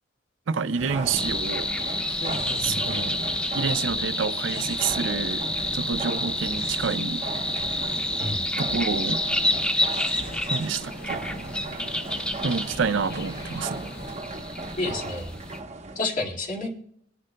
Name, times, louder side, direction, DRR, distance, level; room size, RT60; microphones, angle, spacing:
voice 1, 0.5-1.7 2.6-3.2 3.5-5.4 5.7-7.2 8.6-9.2 10.5-11.2 12.4-13.9, right 5 dB, 70° right, 0.5 m, -28 dB
sound 1, 0.7-16.0, right 2 dB, 35° right, 1.0 m, -37 dB
sound 2, 0.9-14.1, left 1 dB, 85° left, 3.5 m, -41 dB
sound 3, 1.2-15.6, left 1 dB, 5° left, 0.5 m, -29 dB
voice 2, 2.2-3.0 8.2-8.4 14.8-15.3 16.0-16.8, left 2 dB, 40° left, 2.0 m, -31 dB
24.5 x 10.0 x 2.2 m
head